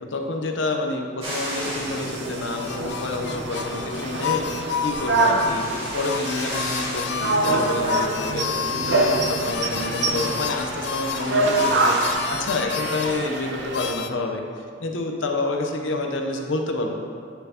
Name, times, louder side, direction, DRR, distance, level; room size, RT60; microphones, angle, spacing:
voice 1, 0.0-4.5 4.8-5.7 5.9-14.4 14.8-16.9, left 2 dB, 85° left, 3 dB, 0.8 m, -28 dB
sound 1, 1.2-12.1, equal, 30° right, 2.1 m, -36 dB
sound 2, 1.6-13.9, right 2 dB, 65° right, 0.6 m, -26 dB
sound 3, 2.5-14.1, left 7 dB, 60° left, 0.3 m, -30 dB
9.1 x 6.9 x 2.9 m, 2.2 s
head